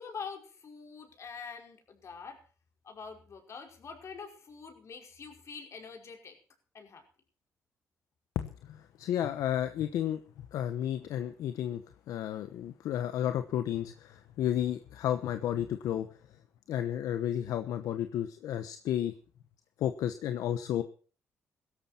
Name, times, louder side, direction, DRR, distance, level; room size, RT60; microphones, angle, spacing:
voice 1, 0.0-2.4 2.8-6.4 6.7-7.0, left 5 dB, 55° left, 3 dB, 5.3 m, -45 dB
voice 2, 8.3-10.2 10.5-11.8 12.1-16.1 16.7-19.1 19.8-20.8, left 11 dB, 80° left, 9 dB, 1.0 m, -32 dB
17.0 x 13.5 x 4.5 m, 0.40 s
supercardioid pair, 65°, 6 cm